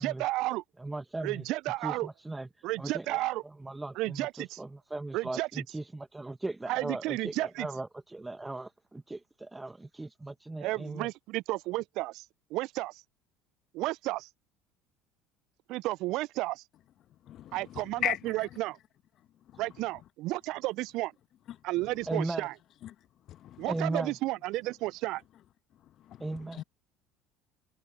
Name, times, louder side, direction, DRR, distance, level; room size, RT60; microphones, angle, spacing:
voice 1, 0.0-0.6 1.2-2.1 2.6-3.4 4.0-4.6 5.1-5.5 6.7-7.7 10.6-12.2 12.5-13.0 13.7-14.3 15.7-16.6 17.5-18.8 19.6-21.1 21.6-22.5 23.6-25.2, right 19 dB, 60° right, 0.5 m, -32 dB
voice 2, 0.8-1.5 1.8-11.1 22.1-22.5 23.7-24.2 26.2-26.6, right 2 dB, 15° right, 1.5 m, -38 dB
voice 3, 17.3-18.4 19.5-19.6 22.8-22.9 23.3-23.7 26.1-26.2 26.6-26.7, left 12 dB, 55° left, 1.2 m, -36 dB
hypercardioid pair, 65°, 0 cm